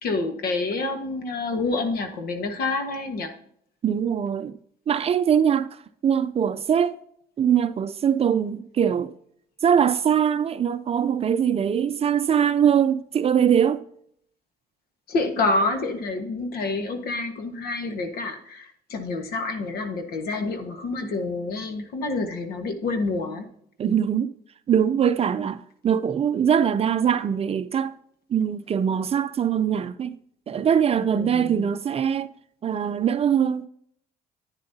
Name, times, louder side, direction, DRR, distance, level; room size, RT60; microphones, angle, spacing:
voice 1, 0.0-3.3 15.1-23.5 31.1-31.7, left 3 dB, 65° left, 1.5 m, -28 dB
voice 2, 3.8-4.6 4.9-7.0 7.4-9.1 9.6-13.8 23.8-24.3 24.7-27.9 28.3-30.2 30.5-32.3 32.6-33.7, right 8 dB, 35° right, 0.5 m, -22 dB
10.5 x 9.7 x 2.8 m
cardioid pair, 110°, 17 cm